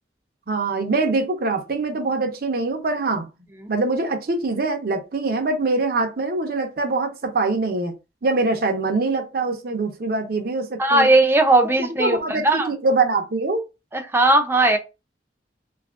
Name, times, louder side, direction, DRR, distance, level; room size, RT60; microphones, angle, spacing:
voice 1, 0.5-3.3 3.7-7.9 8.2-11.1 12.0-13.6, right 3 dB, 55° right, 0.6 m, -23 dB
voice 2, 10.8-12.7 13.9-14.8, right 2 dB, 15° right, 0.4 m, -18 dB
2.6 x 2.4 x 3.5 m
head